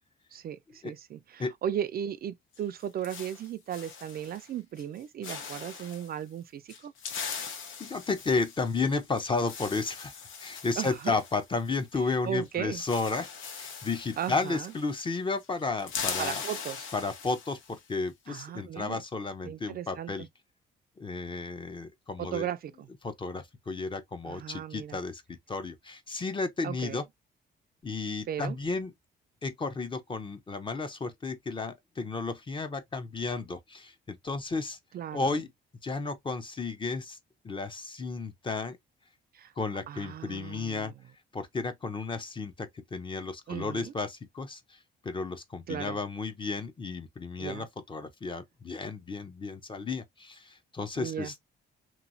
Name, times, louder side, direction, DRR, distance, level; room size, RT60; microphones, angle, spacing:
voice 1, 0.3-6.9 10.8-11.2 12.2-12.8 14.2-14.7 16.2-16.9 18.3-19.0 19.4-20.3 22.2-22.9 24.2-25.0 26.6-27.0 28.3-28.6 34.9-35.4 39.3-39.5 39.9-40.9 43.5-43.9 45.7-46.0 47.4-47.7 51.0-51.3, right 10 dB, 50° right, 0.4 m, -36 dB
sound 1, 2.5-4.5 4.8-5.0 5.2-6.1 6.7-12.2 12.4-12.5 12.7-15.1 15.4-17.8, left 6 dB, 90° left, 0.8 m, -40 dB
voice 2, 7.8-13.3 13.6-16.4 16.9-20.3 21.0-22.5 23.0-27.0 27.8-28.9 29.4-34.8 35.1-35.5 35.8-37.2 37.4-38.8 39.6-40.9 41.3-51.4, left 3 dB, 25° left, 0.6 m, -33 dB
3.0 x 2.6 x 2.5 m
cardioid pair, 90°, 20 cm